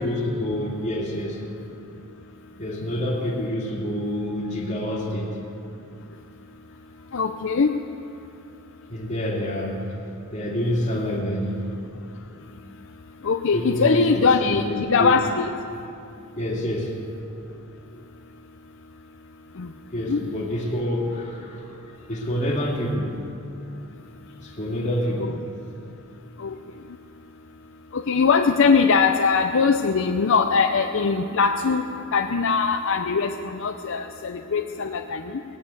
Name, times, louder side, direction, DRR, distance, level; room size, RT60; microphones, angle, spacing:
voice 1, 0.0-1.5 2.6-5.4 8.9-9.9 10.3-11.6 13.5-15.2 16.3-17.0 17.9-18.0 19.9-21.7 22.1-23.3 24.4-25.5, equal, 35° left, -2 dB, 2.5 m, -27 dB
voice 2, 7.1-7.7 13.2-15.5 19.6-19.7 20.0-20.2 25.2-25.3 26.4-26.5 27.9-31.8 32.1-35.3, left 5 dB, 65° left, 5 dB, 0.6 m, -21 dB
18.5 x 8.4 x 8.2 m, 2.6 s
head